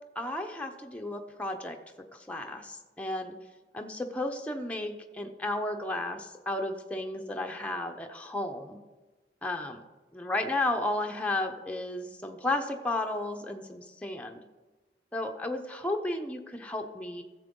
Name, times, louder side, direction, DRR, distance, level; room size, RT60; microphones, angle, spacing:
voice 1, 0.2-1.8 2.1-3.3 3.7-8.8 9.4-9.8 10.1-14.4 15.1-17.2, left 2 dB, 10° left, 3 dB, 0.8 m, -33 dB
14.5 x 7.0 x 3.8 m, 1.2 s
head